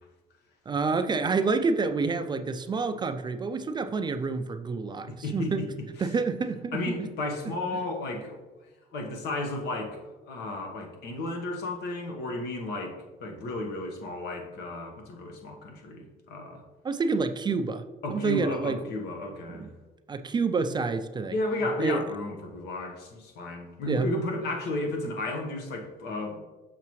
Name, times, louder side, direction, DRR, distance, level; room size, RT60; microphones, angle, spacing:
voice 1, 0.7-5.7 6.0-7.1 7.7-7.8 16.8-17.8 18.1-18.8 19.5-19.7 20.1-21.3 21.8-22.0 23.9-24.1, right 4 dB, 25° right, 9 dB, 0.4 m, -28 dB
voice 2, 5.1-5.7 6.0-6.1 6.7-8.4 8.9-16.6 18.0-19.7 21.3-26.4, left 2 dB, 75° left, 2 dB, 1.3 m, -33 dB
6.7 x 5.8 x 3.1 m, 1.2 s
cardioid pair, 110°, 17 cm